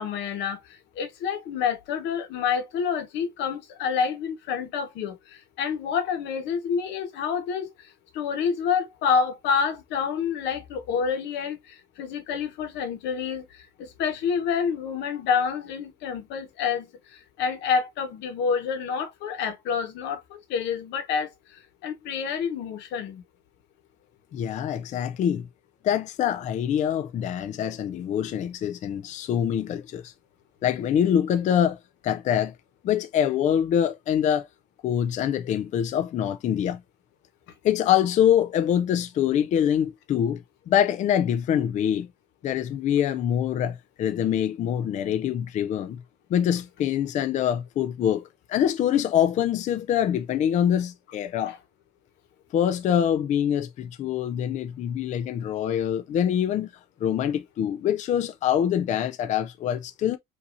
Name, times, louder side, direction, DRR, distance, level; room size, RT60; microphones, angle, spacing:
voice 1, 0.0-23.2 51.5-51.6, left 6 dB, 90° left, 1.2 m, -28 dB
voice 2, 24.3-25.5 25.8-30.1 30.6-31.8 32.0-32.5 32.8-34.5 34.8-36.8 37.6-42.1 42.4-46.0 46.3-51.6 52.5-56.7 57.0-60.2, left 9 dB, 45° left, 0.4 m, -24 dB
5.4 x 2.7 x 2.5 m
cardioid pair, 145°, 18 cm